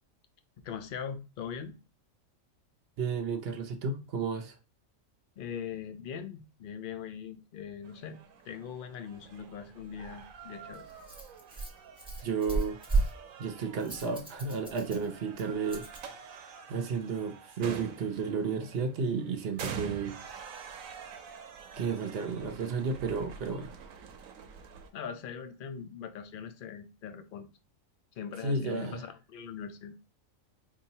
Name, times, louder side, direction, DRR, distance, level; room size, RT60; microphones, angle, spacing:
voice 1, 0.6-1.8 5.4-8.2 8.4-10.9 24.9-27.5 28.2-30.0, left 7 dB, 60° left, 0.5 m, -41 dB
voice 2, 3.0-4.5 12.2-13.1 13.4-20.2 21.8-23.7 28.4-29.0, right 5 dB, 60° right, 0.7 m, -33 dB
sound 1, 7.8-24.9, right 6 dB, 85° right, 1.1 m, -46 dB
Rattle, 10.0-16.0, right 3 dB, 5° right, 1.1 m, -35 dB
4.5 x 2.8 x 2.7 m
omnidirectional pair, 1.4 m